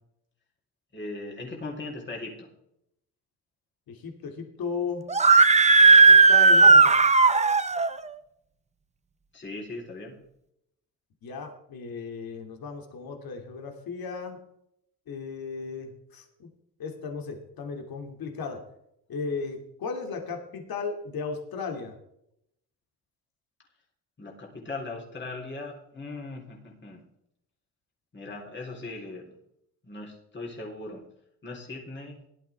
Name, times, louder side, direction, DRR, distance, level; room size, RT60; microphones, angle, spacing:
voice 1, 0.9-2.5 9.3-10.1 24.2-27.0 28.1-29.2 29.8-31.0 31.4-32.2, left 2 dB, 30° left, -2 dB, 3.7 m, -39 dB
voice 2, 3.9-5.0 6.1-7.0 11.2-14.4 15.1-16.5 16.8-18.6 19.1-21.9, left 5 dB, 65° left, 3 dB, 2.5 m, -35 dB
Screaming, 5.1-7.9, right 4 dB, 20° right, 0.7 m, -16 dB
17.5 x 12.0 x 3.5 m, 0.78 s
cardioid pair, 105°, 38 cm